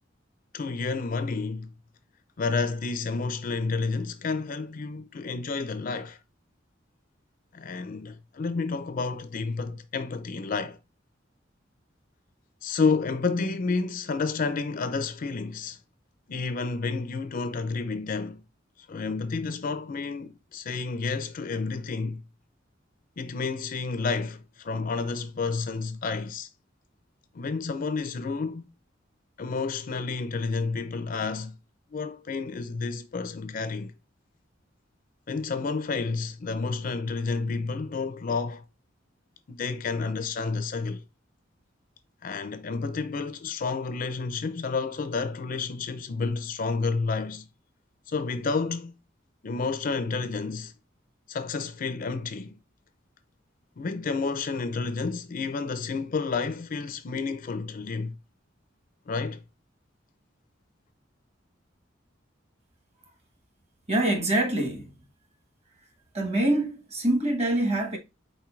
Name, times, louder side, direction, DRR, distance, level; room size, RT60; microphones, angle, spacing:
voice 1, 0.5-1.7 2.4-6.2 7.5-10.8 12.6-15.8 16.3-18.4 18.9-22.2 23.2-26.5 27.3-28.7 29.4-31.5 31.9-33.9 35.3-38.6 39.5-41.0 42.2-47.5 48.1-49.0 49.4-50.7 51.3-52.6 53.8-58.1 59.1-59.4, left 4 dB, 50° left, 0.5 m, -30 dB
voice 2, 63.9-64.9 66.1-68.0, right 1 dB, 35° right, 1.1 m, -25 dB
4.4 x 4.3 x 2.3 m
head